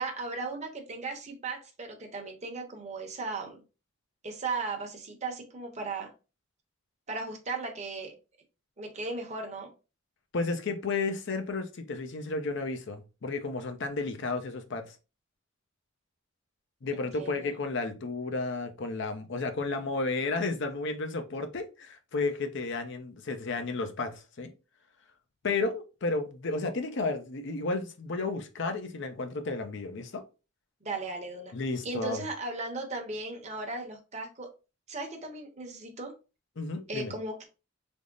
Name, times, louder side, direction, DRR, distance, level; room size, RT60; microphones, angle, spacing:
voice 1, 0.0-3.6 4.2-6.1 7.1-8.1 8.8-9.7 16.9-17.5 30.8-31.5 31.8-34.5 34.9-36.1 36.9-37.4, right 3 dB, 35° right, 0.8 m, -36 dB
voice 2, 10.3-15.0 16.8-24.5 25.4-30.2 31.5-32.2 36.6-37.1, left 3 dB, 60° left, 0.6 m, -32 dB
3.5 x 2.0 x 3.7 m
head